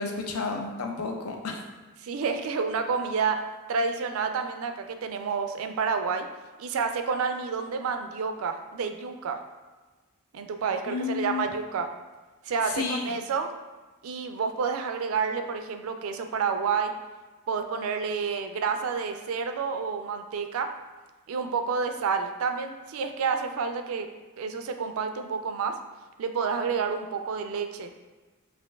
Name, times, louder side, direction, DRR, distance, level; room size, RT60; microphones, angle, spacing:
voice 1, 0.0-1.6 10.9-11.5 12.6-13.1, left 4 dB, 85° left, 2 dB, 0.5 m, -31 dB
voice 2, 2.0-3.4 3.7-6.3 6.6-9.4 10.3-11.9 12.4-13.5 14.0-16.9 17.5-20.7 21.3-24.1 24.4-25.8 26.2-27.9, right 5 dB, 70° right, 7 dB, 0.4 m, -29 dB
5.1 x 2.6 x 2.2 m, 1.2 s
head